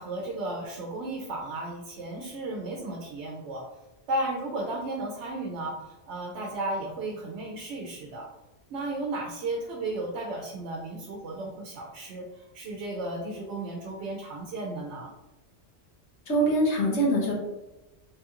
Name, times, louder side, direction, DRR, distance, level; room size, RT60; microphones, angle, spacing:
voice 1, 0.0-3.7 4.1-8.3 8.7-15.1, right 2 dB, 80° right, 0 dB, 0.9 m, -34 dB
voice 2, 16.3-17.3, right 1 dB, 85° left, -2 dB, 1.2 m, -23 dB
3.3 x 2.4 x 2.8 m, 1.0 s
omnidirectional pair, 1.1 m